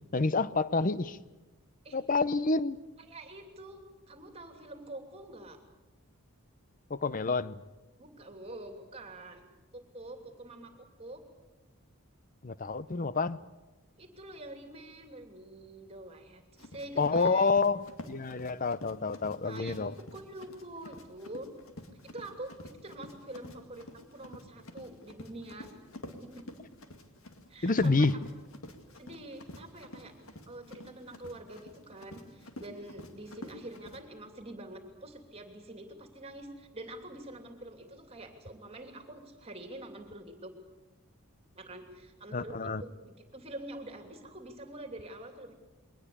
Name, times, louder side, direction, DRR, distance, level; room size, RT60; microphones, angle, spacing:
voice 1, 0.1-1.2 1.9-2.8 6.9-7.6 12.4-13.4 17.0-20.0 27.6-28.1 42.3-42.8, left 3 dB, 35° left, 0.6 m, -28 dB
voice 2, 3.0-5.6 8.0-9.4 9.7-11.2 14.0-17.5 19.4-21.5 22.1-22.5 22.8-25.7 26.1-26.3 27.5-28.1 29.0-30.1 30.5-40.5 41.5-45.5, right 1 dB, 25° right, 2.8 m, -46 dB
Run, 16.6-34.0, left 1 dB, 65° left, 2.1 m, -48 dB
22.5 x 19.0 x 8.5 m
head